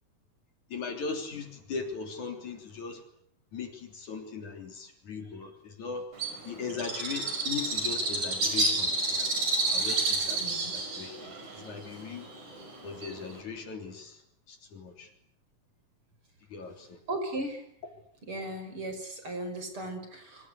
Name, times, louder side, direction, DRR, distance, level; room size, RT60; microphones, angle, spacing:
voice 1, 0.7-3.0 3.5-6.1 6.4-9.3 9.7-10.4 10.7-12.3 12.8-14.2 14.5-15.1 16.5-17.0, left 5 dB, 55° left, 5 dB, 4.7 m, -39 dB
Bird, 6.2-13.4, right 2 dB, 55° right, 7.5 m, -30 dB
voice 2, 10.4-10.8 17.1-17.7 18.3-20.5, right 1 dB, 35° right, 6 dB, 6.2 m, -37 dB
27.5 x 26.0 x 8.3 m, 0.65 s
omnidirectional pair, 4.1 m